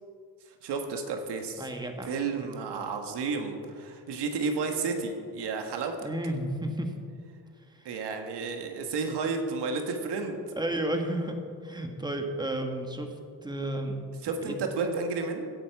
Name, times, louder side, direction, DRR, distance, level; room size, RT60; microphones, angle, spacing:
voice 1, 0.6-1.7 2.1-6.0 7.8-10.4 14.2-15.5, right 4 dB, 85° right, 4 dB, 1.7 m, -32 dB
voice 2, 1.6-2.1 6.0-6.9 7.8-7.9 10.5-11.4 11.6-13.1 13.4-14.0 14.4-14.6, right 1 dB, 10° right, 4 dB, 1.6 m, -32 dB
16.5 x 10.0 x 4.7 m, 2.3 s
cardioid pair, 110°, 40 cm